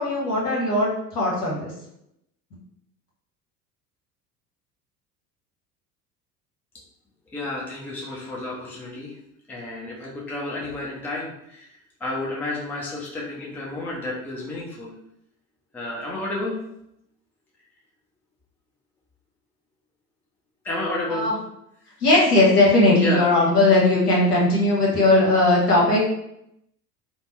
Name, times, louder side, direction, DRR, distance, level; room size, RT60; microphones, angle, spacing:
voice 1, 0.0-1.7 21.1-21.3 22.0-26.0, left 2 dB, 75° left, -5 dB, 1.2 m, -18 dB
voice 2, 7.3-9.1 9.5-11.8 12.0-14.9 15.7-16.6 20.6-21.3 23.0-23.3, left 2 dB, 5° left, -4 dB, 0.4 m, -31 dB
2.7 x 2.1 x 3.1 m, 0.79 s
figure-of-eight pair, 70°, 47 cm